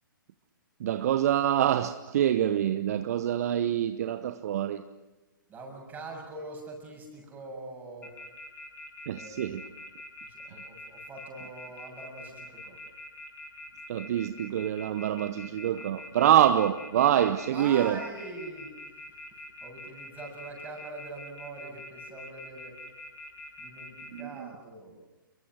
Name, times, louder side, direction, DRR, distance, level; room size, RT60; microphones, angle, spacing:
voice 1, 0.8-4.8 9.1-9.6 13.9-18.0 24.1-24.5, right 11 dB, 45° right, 0.9 m, -26 dB
voice 2, 5.5-8.1 9.1-9.6 10.3-12.8 17.1-17.2 17.5-18.7 19.6-22.8 23.6-24.9, right 3 dB, 15° right, 7.1 m, -43 dB
sound 1, 8.0-24.2, left 2 dB, 15° left, 5.3 m, -44 dB
29.5 x 23.0 x 6.2 m
figure-of-eight pair, 125°, 11 cm